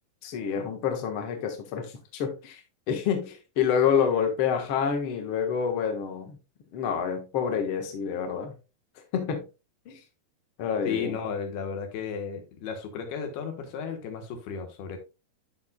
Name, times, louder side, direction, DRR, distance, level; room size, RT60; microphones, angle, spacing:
voice 1, 0.2-2.6 2.9-6.4 6.7-8.5 9.1-9.4 9.8-10.0 10.6-11.2, left 7 dB, 55° left, 1.5 m, -28 dB
voice 2, 10.8-15.0, left 6 dB, 85° left, 3.3 m, -34 dB
13.5 x 4.8 x 2.3 m
omnidirectional pair, 4.4 m